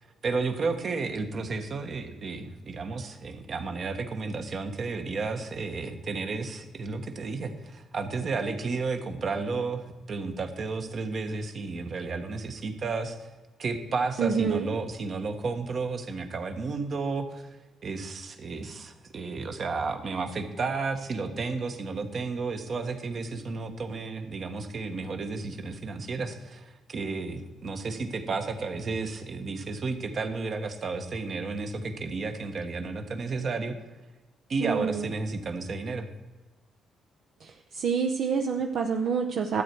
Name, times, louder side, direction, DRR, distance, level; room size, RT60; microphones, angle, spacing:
voice 1, 0.0-13.3 13.6-17.5 17.8-33.7 34.5-36.1, right 4 dB, 50° right, 7 dB, 1.3 m, -32 dB
voice 2, 14.2-14.7 34.6-35.1 37.7-39.6, right 6 dB, 65° right, 4 dB, 0.7 m, -27 dB
12.5 x 8.1 x 4.6 m, 1.2 s
cardioid pair, 90°, 0 cm